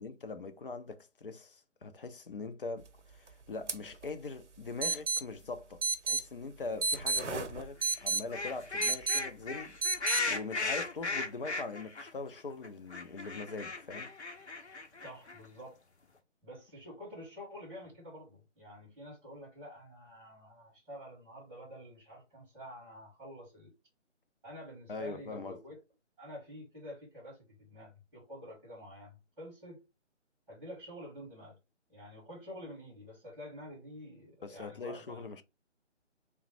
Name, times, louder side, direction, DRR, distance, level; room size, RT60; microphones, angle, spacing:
voice 1, 0.0-9.8 10.3-14.1 24.9-25.6 34.4-35.4, left 3 dB, 50° left, 0.6 m, -42 dB
sound 1, 3.7-3.8 4.0-4.1 4.8-5.2 5.8-6.2 6.8-8.2 8.8-9.2 9.8-10.2, right 4 dB, 70° right, 0.7 m, -31 dB
sound 2, 7.1-7.4 7.8-12.1 12.4-12.5 12.6-15.4, left 3 dB, 65° left, 0.9 m, -37 dB
voice 2, 15.0-15.8 16.4-23.7 24.4-25.8 26.2-29.8 30.5-31.6 31.9-35.2, equal, 5° right, 1.2 m, -48 dB
3.5 x 2.2 x 4.1 m
figure-of-eight pair, 150°, 36 cm